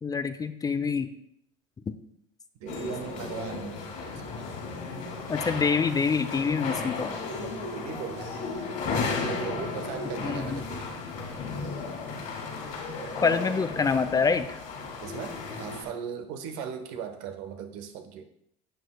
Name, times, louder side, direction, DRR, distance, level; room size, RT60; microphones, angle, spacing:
voice 1, 0.0-1.1 1.9-2.0 5.3-7.1 10.2-10.6 13.2-14.6, left 5 dB, 25° left, 11 dB, 0.6 m, -26 dB
voice 2, 2.6-4.6 5.0-5.2 7.3-8.4 9.2-10.9 15.0-18.2, right 7 dB, 70° right, 6 dB, 1.2 m, -38 dB
sound 1, 2.7-15.8, left 4 dB, 55° left, 2.9 m, -34 dB
11.5 x 7.7 x 2.3 m, 0.73 s
hypercardioid pair, 80°, 16 cm